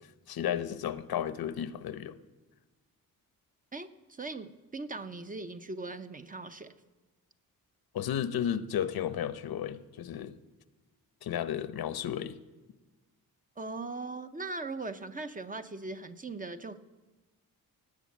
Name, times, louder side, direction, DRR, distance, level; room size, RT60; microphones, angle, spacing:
voice 1, 0.0-2.2 7.9-10.3 11.2-12.4, left 9 dB, 80° left, 14 dB, 0.9 m, -33 dB
voice 2, 3.7-6.7 13.6-16.8, right 3 dB, 25° right, 10 dB, 0.6 m, -39 dB
18.0 x 8.5 x 7.3 m, 1.2 s
wide cardioid pair, 160°, 36 cm